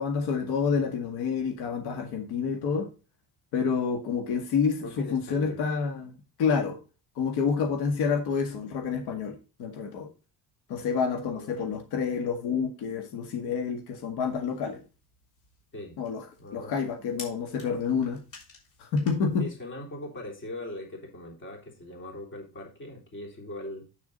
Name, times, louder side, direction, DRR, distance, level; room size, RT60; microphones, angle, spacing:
voice 1, 0.0-2.9 3.5-6.1 6.4-6.8 7.2-10.1 10.7-14.8 16.0-16.2 16.5-18.2 18.8-19.5, left 6 dB, 85° left, 5 dB, 1.8 m, -28 dB
voice 2, 4.8-5.6 11.2-11.6 15.7-16.0 16.4-16.8 19.4-23.8, left 1 dB, 30° left, 0 dB, 3.4 m, -40 dB
sound 1, 14.2-19.5, left 4 dB, 55° left, 5.8 m, -51 dB
8.6 x 6.9 x 4.0 m, 0.32 s
cardioid pair, 150°, 38 cm